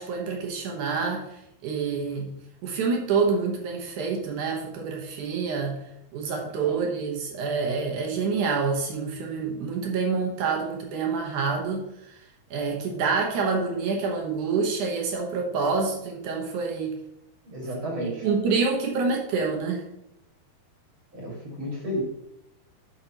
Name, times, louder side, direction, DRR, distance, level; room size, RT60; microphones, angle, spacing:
voice 1, 0.0-2.3 2.6-5.8 6.1-12.2 12.5-17.0 18.0-19.8, right 4 dB, 65° right, 1 dB, 2.2 m, -27 dB
voice 2, 17.4-18.3 21.1-22.0, equal, 40° right, -2 dB, 2.2 m, -32 dB
12.0 x 5.6 x 2.9 m, 0.80 s
omnidirectional pair, 4.4 m